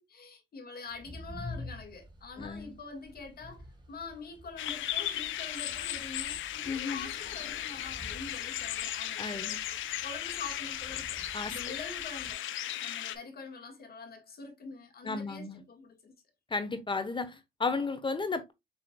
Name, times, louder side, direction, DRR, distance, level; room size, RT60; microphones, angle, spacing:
voice 1, 0.0-9.6 10.0-12.4 12.8-16.1, left 4 dB, 50° left, 1.7 m, -45 dB
sound 1, 0.9-12.3, left 1 dB, 20° right, 1.7 m, -49 dB
voice 2, 2.4-2.7 6.7-7.1 9.2-9.6 11.3-11.6 15.0-15.6 16.5-18.5, left 4 dB, 25° left, 1.0 m, -34 dB
sound 2, 4.6-13.2, left 12 dB, 75° left, 0.6 m, -36 dB
6.8 x 3.1 x 2.2 m
cardioid pair, 90°, 20 cm